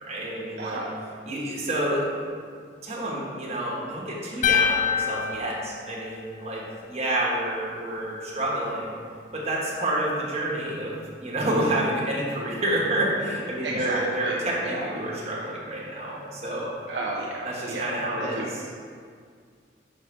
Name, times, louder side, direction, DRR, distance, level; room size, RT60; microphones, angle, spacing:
voice 1, 0.0-0.8 1.2-2.1 2.8-8.9 9.3-10.9 11.2-16.7 17.4-18.8, right 1 dB, 35° right, -5 dB, 1.5 m, -28 dB
voice 2, 0.6-0.9 13.6-14.9 16.9-18.4, right 2 dB, 75° right, -3 dB, 0.7 m, -33 dB
sound 1, 4.4-6.7, left 7 dB, 45° left, 0.3 m, -26 dB
6.3 x 5.7 x 3.4 m, 2.1 s
head